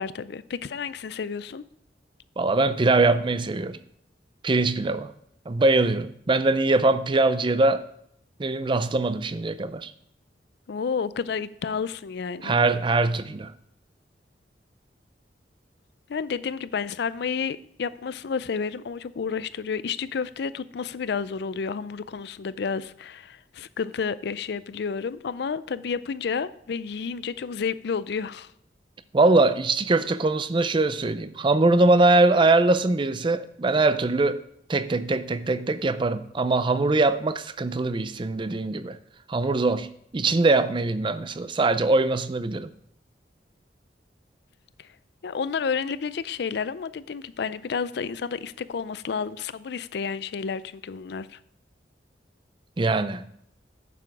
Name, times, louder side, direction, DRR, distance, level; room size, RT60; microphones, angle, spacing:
voice 1, 0.0-1.6 10.7-12.5 16.1-28.5 44.8-44.9 45.2-51.4, left 6 dB, 65° left, 0.4 m, -31 dB
voice 2, 2.4-3.8 4.4-5.1 5.5-7.8 8.4-9.9 12.4-13.5 29.1-34.4 34.7-39.0 39.3-39.9 40.1-42.7 52.8-53.2, right 2 dB, 30° right, 0.4 m, -22 dB
9.8 x 6.8 x 4.7 m
head